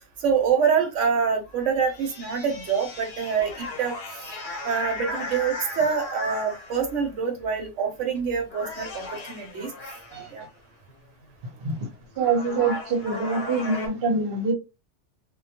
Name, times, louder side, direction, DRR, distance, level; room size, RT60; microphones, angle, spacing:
voice 1, 0.2-3.9 4.6-9.7 10.3-10.4, right 6 dB, 80° right, 0.9 m, -25 dB
sound 1, 1.5-7.0 7.9-8.2 8.5-10.3 11.7-11.8 12.2-13.9, left 2 dB, 65° left, 1.0 m, -36 dB
voice 2, 12.2-14.5, right 4 dB, 55° right, 0.9 m, -25 dB
2.2 x 2.2 x 2.7 m
omnidirectional pair, 1.3 m